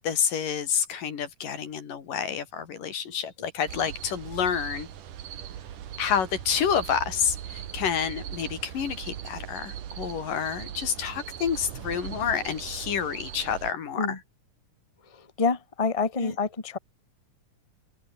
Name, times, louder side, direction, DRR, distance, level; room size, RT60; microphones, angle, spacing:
voice 1, 0.0-4.9 6.0-14.2 16.2-16.4, left 8 dB, 90° left, 4.6 m, -29 dB
sound 1, 3.7-13.7, right 10 dB, 80° right, 3.4 m, -40 dB
voice 2, 15.4-16.8, left 4 dB, 15° left, 1.3 m, -27 dB
open air
omnidirectional pair, 3.7 m